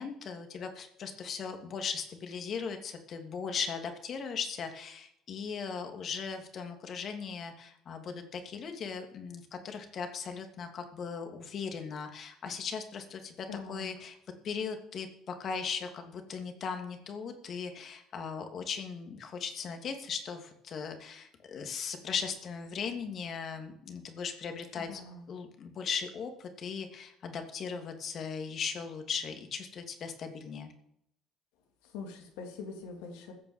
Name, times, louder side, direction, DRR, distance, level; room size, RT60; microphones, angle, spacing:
voice 1, 0.0-14.2 14.4-25.0 25.3-30.7, left 6 dB, 55° left, 6 dB, 2.8 m, -38 dB
voice 2, 13.5-13.9 24.8-25.3 31.8-33.3, left 4 dB, 80° left, 3 dB, 3.2 m, -43 dB
15.0 x 7.0 x 7.4 m, 0.76 s
hypercardioid pair, 65°, 0 cm